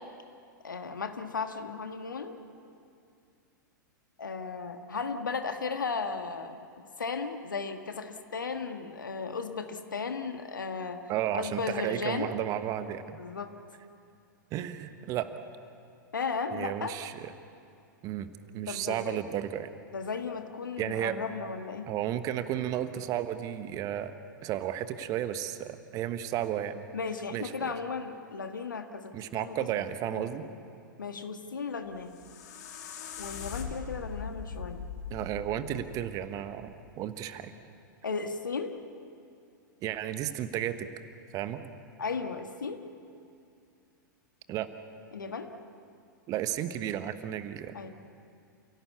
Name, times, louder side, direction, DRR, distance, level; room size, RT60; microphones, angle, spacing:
voice 1, 0.6-2.4 4.2-11.0 11.3-12.3 13.2-13.5 16.1-17.0 18.7-19.2 19.9-21.9 26.9-29.7 30.1-30.5 31.0-32.2 33.2-34.9 38.0-38.8 42.0-42.8 45.1-45.5 47.7-47.9, left 5 dB, 75° left, 7 dB, 1.7 m, -35 dB
voice 2, 11.1-13.2 14.5-15.3 16.5-17.3 18.0-18.3 18.5-19.7 20.8-21.2 21.9-24.1 24.4-26.9 27.3-27.7 29.1-30.5 35.1-37.5 39.8-40.9 41.3-41.6 44.5-44.7 46.3-47.7, right 11 dB, 35° right, 10 dB, 1.2 m, -33 dB
sound 1, 31.8-36.9, left 6 dB, 55° left, 2.7 m, -41 dB
29.0 x 17.0 x 8.4 m, 2.5 s
figure-of-eight pair, 95°, 11 cm